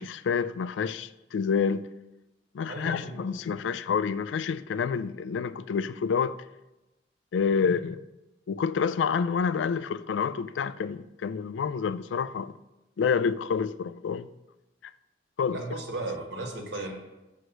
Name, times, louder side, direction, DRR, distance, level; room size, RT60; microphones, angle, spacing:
voice 1, 0.0-1.9 2.5-6.4 7.3-8.0 8.5-12.5 13.0-14.3 15.4-15.6, left 6 dB, 85° left, 0.3 m, -28 dB
voice 2, 2.7-3.2 3.6-3.7 7.5-7.6 15.5-16.9, right 2 dB, 65° right, 1.4 m, -36 dB
6.4 x 4.8 x 6.2 m
head